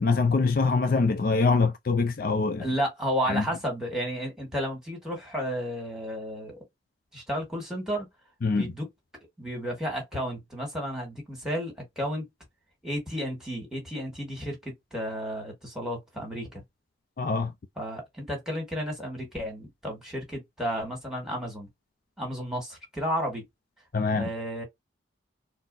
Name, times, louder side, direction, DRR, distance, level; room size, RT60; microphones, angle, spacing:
voice 1, 0.0-2.7 3.3-3.4 8.4-8.7 17.2-17.5 23.9-24.3, left 4 dB, 50° left, 0.4 m, -24 dB
voice 2, 2.6-6.6 7.1-8.1 8.5-8.9 9.4-12.3 12.8-16.6 17.8-21.7 22.2-23.5 24.1-24.6, equal, 5° right, 1.7 m, -32 dB
4.2 x 2.0 x 2.5 m
head